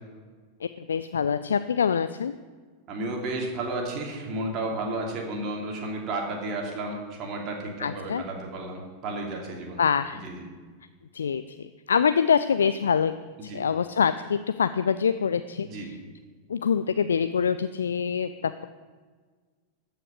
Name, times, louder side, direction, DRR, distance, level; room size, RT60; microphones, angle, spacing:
voice 1, 0.9-2.3 7.8-8.2 9.8-10.2 11.1-13.1 13.4-16.0 16.5-18.6, left 7 dB, 70° left, 12 dB, 0.3 m, -25 dB
voice 2, 2.9-9.8 10.2-10.4 13.4-13.6 15.6-15.9, right 2 dB, 35° right, 0 dB, 2.8 m, -32 dB
14.0 x 5.8 x 7.9 m, 1.5 s
figure-of-eight pair, 90°, 0 cm